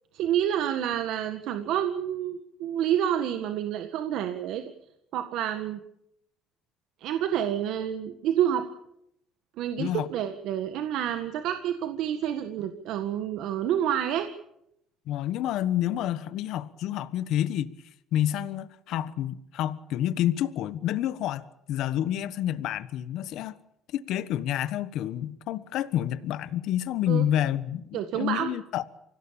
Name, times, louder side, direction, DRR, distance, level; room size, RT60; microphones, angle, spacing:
voice 1, 0.1-4.6 5.1-5.8 7.0-8.7 9.6-14.3 27.1-27.2 27.9-28.5, right 10 dB, 75° right, 1.7 m, -28 dB
voice 2, 15.1-17.7 18.1-23.6 23.9-28.8, left 11 dB, 70° left, 1.2 m, -29 dB
25.5 x 17.0 x 8.8 m
cardioid pair, 105°, 0 cm